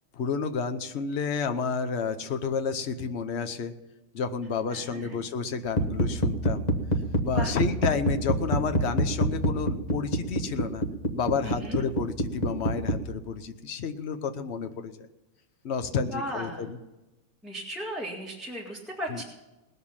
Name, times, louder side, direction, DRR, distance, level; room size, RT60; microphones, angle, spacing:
voice 1, 0.2-3.7 4.1-6.7 7.2-10.8 11.1-15.0 15.6-16.8 19.1-19.2, left 5 dB, 60° left, 9 dB, 0.6 m, -30 dB
voice 2, 4.7-5.2 7.2-7.5 11.4-11.8 16.0-16.6 17.4-19.2, equal, ahead, -5 dB, 1.8 m, -36 dB
sound 1, 5.6-13.0, equal, 25° left, 1.0 m, -26 dB
19.5 x 6.9 x 7.2 m, 1.0 s
omnidirectional pair, 2.3 m